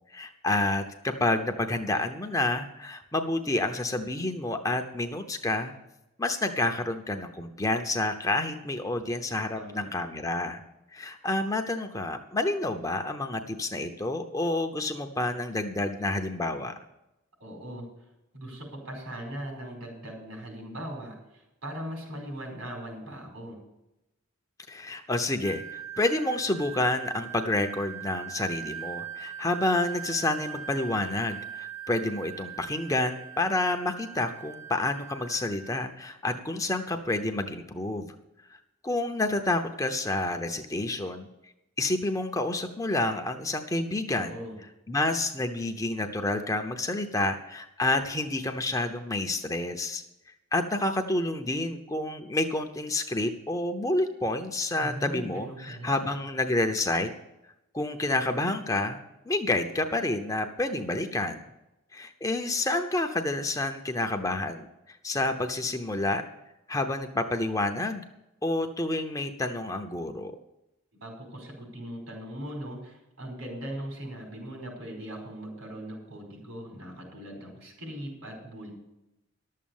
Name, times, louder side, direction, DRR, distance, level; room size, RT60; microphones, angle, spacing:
voice 1, 0.1-5.7 6.2-10.6 10.9-16.7 24.7-38.1 38.8-41.3 41.8-44.3 44.9-50.0 50.5-57.1 57.7-61.4 61.9-66.2 66.7-68.0 68.4-70.3, left 2 dB, 15° left, 5 dB, 0.7 m, -29 dB
voice 2, 9.5-9.9 17.4-17.9 18.3-23.6 44.1-44.6 54.8-56.1 70.9-78.7, equal, 85° right, 0 dB, 5.1 m, -40 dB
Wind instrument woodwind instrument, 25.4-35.8, right 9 dB, 55° right, 1.1 m, -41 dB
12.0 x 7.5 x 7.2 m, 0.91 s
head